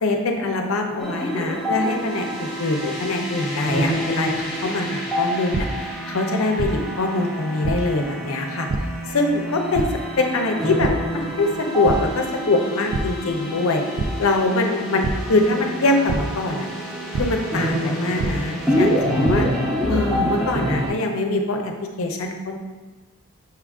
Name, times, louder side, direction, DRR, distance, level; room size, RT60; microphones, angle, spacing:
voice 1, 0.0-5.7 6.1-8.7 9.1-9.8 10.2-13.8 14.2-16.7 17.2-19.5 19.9-22.6, left 2 dB, 70° left, 3 dB, 0.6 m, -23 dB
sound 1, 1.0-20.9, equal, ahead, 0.6 m, -27 dB
sound 2, 5.5-5.6 6.6-6.7 7.6-7.7 8.7-8.8 9.7-9.8 10.8-10.9 11.4-11.5 11.9-12.0 12.9-13.0 14.0-14.1 15.0-15.1 16.1-16.2 17.1-17.2 18.2-18.3 19.0-19.3, right 4 dB, 60° right, 0.3 m, -24 dB
5.7 x 2.4 x 3.5 m, 1.2 s
head